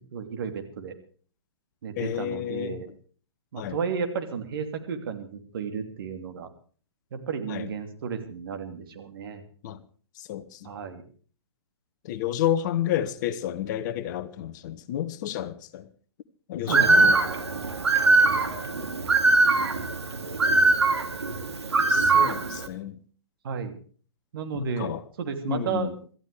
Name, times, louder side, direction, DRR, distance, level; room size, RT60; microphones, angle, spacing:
voice 1, 0.1-0.9 1.8-2.9 3.5-6.5 7.1-9.4 10.6-11.0 16.7-17.2 23.4-23.7 24.3-24.9 25.2-25.9, right 6 dB, 55° right, 2.8 m, -33 dB
voice 2, 2.0-2.8 3.6-3.8 7.5-7.7 9.6-9.8 10.2-10.7 12.0-15.9 16.5-17.2 21.9-23.0 24.5-25.0 25.5-25.9, left 11 dB, 45° left, 1.1 m, -30 dB
Bird, 16.7-22.7, right 3 dB, 75° right, 2.4 m, -22 dB
26.5 x 13.5 x 3.4 m
figure-of-eight pair, 115°, 14 cm